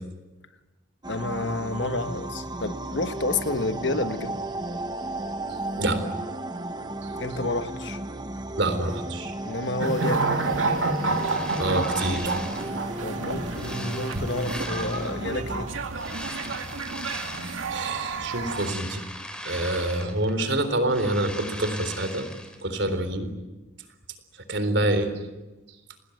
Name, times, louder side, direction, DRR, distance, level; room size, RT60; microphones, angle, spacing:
sound 1, 1.0-15.7, right 2 dB, 20° right, 1.3 m, -34 dB
voice 1, 1.1-4.4 7.2-8.0 9.4-10.3 13.0-15.7, left 2 dB, 60° left, 9 dB, 1.5 m, -30 dB
voice 2, 8.6-9.3 11.6-12.3 17.7-19.0 19.5-22.3 22.6-23.3 24.5-25.1, right 1 dB, 60° right, 10 dB, 3.8 m, -26 dB
sound 2, 9.8-18.7, right 3 dB, 80° right, 2.4 m, -29 dB
sound 3, 10.8-12.8 13.3-15.3 15.9-17.8 18.2-20.4 20.7-22.6, left 1 dB, 5° left, 3.2 m, -39 dB
29.0 x 20.0 x 9.3 m, 1.1 s
head